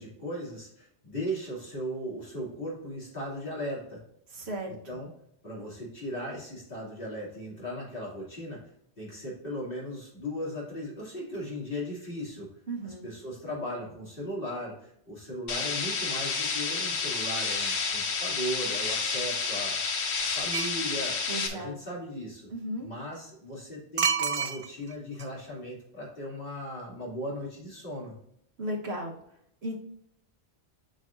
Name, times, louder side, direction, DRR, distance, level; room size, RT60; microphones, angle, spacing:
voice 1, 0.0-4.0 4.7-5.1 5.4-8.6 9.0-12.5 12.8-21.2 21.5-22.5 22.8-28.1, equal, 55° left, -5 dB, 3.1 m, -37 dB
voice 2, 4.3-4.8 12.7-13.0 21.3-21.7 22.5-22.9 28.6-29.2 29.6-29.8, right 1 dB, 75° right, 1 dB, 1.6 m, -35 dB
sound 1, 15.5-21.5, left 5 dB, 75° left, 1.2 m, -30 dB
sound 2, 20.5-20.8 24.0-24.9 25.2-25.3, right 6 dB, 55° right, 0.3 m, -27 dB
9.2 x 5.0 x 2.6 m, 0.72 s
omnidirectional pair, 1.1 m